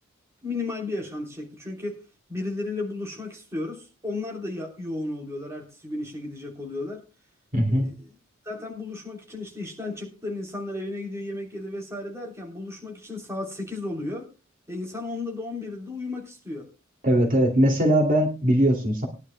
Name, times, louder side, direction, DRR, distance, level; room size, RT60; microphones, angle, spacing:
voice 1, 0.4-2.0 2.3-7.0 7.7-8.1 8.4-14.3 14.7-16.7, left 2 dB, 15° right, 0 dB, 3.2 m, -34 dB
voice 2, 7.5-7.9 17.0-19.1, equal, 40° right, 2 dB, 2.6 m, -20 dB
21.0 x 11.0 x 2.2 m, 0.31 s
head